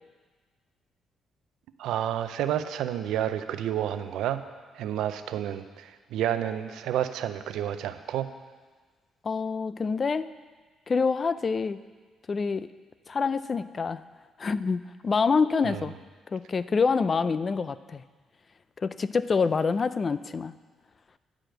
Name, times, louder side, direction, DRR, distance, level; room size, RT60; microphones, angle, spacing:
voice 1, 1.8-4.4 4.7-8.3 15.6-15.8, right 11 dB, 85° right, 10 dB, 0.5 m, -30 dB
voice 2, 9.2-10.3 10.9-11.8 12.3-12.7 13.1-14.0 14.4-15.9 16.3-18.0 18.8-20.5, left 5 dB, 40° left, 14 dB, 0.4 m, -26 dB
10.5 x 5.0 x 7.7 m, 1.4 s
cardioid pair, 90°, 0 cm